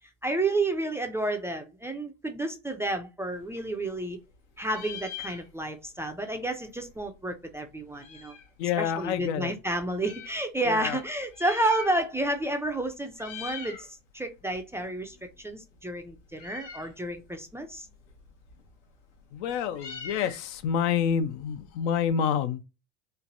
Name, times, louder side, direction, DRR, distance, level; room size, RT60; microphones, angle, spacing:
voice 1, 0.2-4.2 4.6-8.3 8.8-17.9, right 2 dB, 10° right, 0.4 m, -31 dB
Meow, 3.3-4.3 4.6-5.9 6.2-6.3 6.4-8.6 9.2-10.4 11.2-12.4 12.6-12.8 13.1-13.9 14.2-22.1, left 7 dB, 85° left, 0.9 m, -45 dB
voice 2, 8.6-9.5 10.7-11.0 19.3-22.6, left 8 dB, 65° left, 0.5 m, -28 dB
3.2 x 2.2 x 2.5 m
hypercardioid pair, 90°, 36 cm